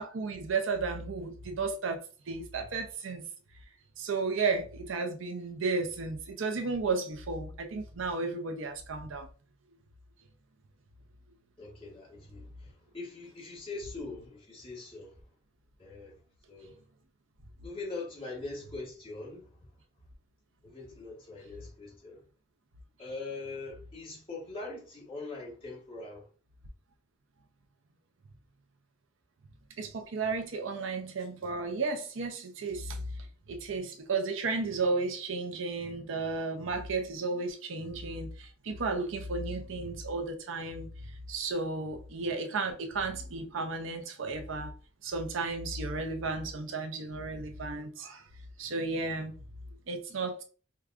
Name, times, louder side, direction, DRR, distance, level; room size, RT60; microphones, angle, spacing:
voice 1, 0.0-3.2 4.0-9.3 29.8-33.0 33.5-40.9 41.3-44.7 45.0-48.2 48.6-49.4 49.9-50.4, right 3 dB, 75° right, 0.6 m, -33 dB
voice 2, 11.6-15.2 15.8-16.2 16.5-16.8 17.6-19.8 20.6-22.2 23.0-26.3, left 3 dB, 30° left, 1.5 m, -42 dB
4.6 x 2.3 x 2.4 m
head